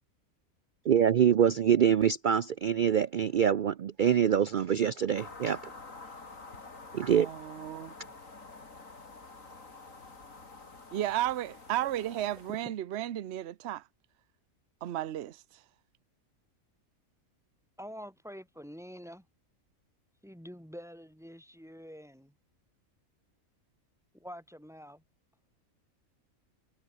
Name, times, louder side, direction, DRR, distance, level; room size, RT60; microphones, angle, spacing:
voice 1, 0.9-5.6 6.9-7.3, right 8 dB, 90° right, 0.4 m, -25 dB
sound 1, 5.1-12.7, left 3 dB, 65° left, 3.7 m, -48 dB
voice 2, 7.2-7.9 10.9-13.8 14.8-15.6, right 13 dB, 55° right, 0.9 m, -34 dB
voice 3, 17.8-19.3 20.2-22.3 24.1-25.0, equal, ahead, 6.8 m, -46 dB
omnidirectional pair, 1.5 m